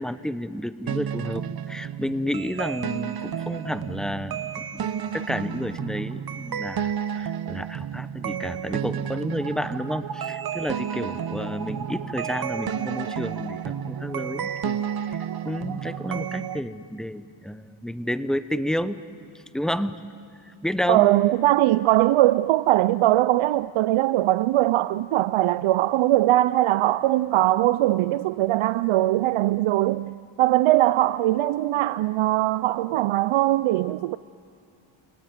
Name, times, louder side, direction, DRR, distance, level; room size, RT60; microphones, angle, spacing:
voice 1, 0.0-19.0 19.5-20.0 20.4-21.1, equal, ahead, 0.9 m, -31 dB
sound 1, 0.9-16.6, right 8 dB, 50° right, 0.9 m, -31 dB
voice 2, 20.9-34.2, right 15 dB, 75° right, 0.6 m, -21 dB
29.5 x 19.0 x 9.3 m
cardioid pair, 95°, 49 cm